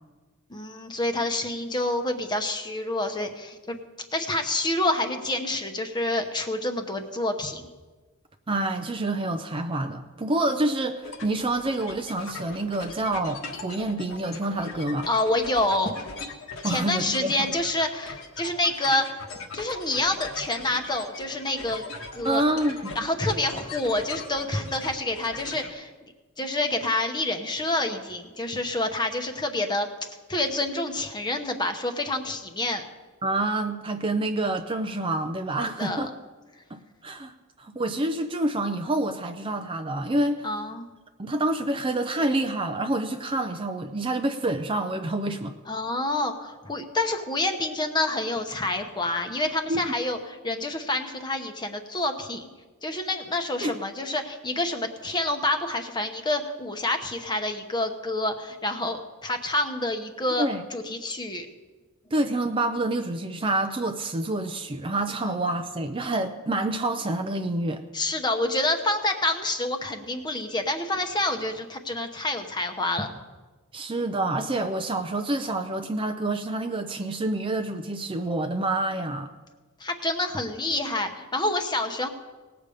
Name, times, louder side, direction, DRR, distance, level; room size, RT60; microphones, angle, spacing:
voice 1, 0.5-3.8 4.1-7.7 15.1-16.0 16.6-19.3 19.5-21.8 22.1-22.4 22.9-25.9 26.4-32.9 35.8-36.1 40.4-40.9 45.7-52.5 52.8-61.5 65.2-65.3 67.9-73.1 79.8-82.1, left 2 dB, 20° left, 6 dB, 0.9 m, -28 dB
voice 2, 8.5-15.1 16.6-17.3 22.2-23.0 33.2-36.1 36.7-37.3 37.6-40.5 41.2-45.5 49.7-49.8 53.6-53.8 60.4-60.6 62.1-67.8 73.7-79.3, right 2 dB, 25° right, 7 dB, 0.5 m, -27 dB
sound 1, 11.0-25.7, left 3 dB, 65° left, 1.3 m, -40 dB
19.0 x 6.9 x 5.0 m, 1.3 s
head